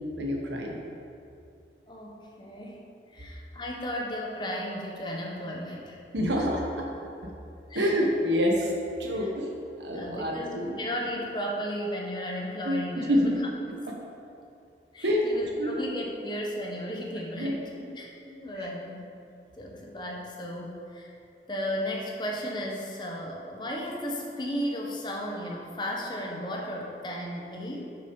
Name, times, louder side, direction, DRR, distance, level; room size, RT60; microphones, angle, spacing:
voice 1, 0.2-0.8 6.1-6.9 7.7-8.7 9.0-10.7 12.6-13.3 15.0-15.3 15.6-15.7 17.4-17.5, equal, 90° right, 0 dB, 1.3 m, -27 dB
voice 2, 1.9-2.8 3.1-6.0 7.7-7.9 9.1-9.3 9.9-13.4 14.9-19.1 19.6-21.2 21.5-27.8, equal, 25° left, -1 dB, 1.0 m, -35 dB
6.7 x 6.1 x 5.3 m, 2.6 s
head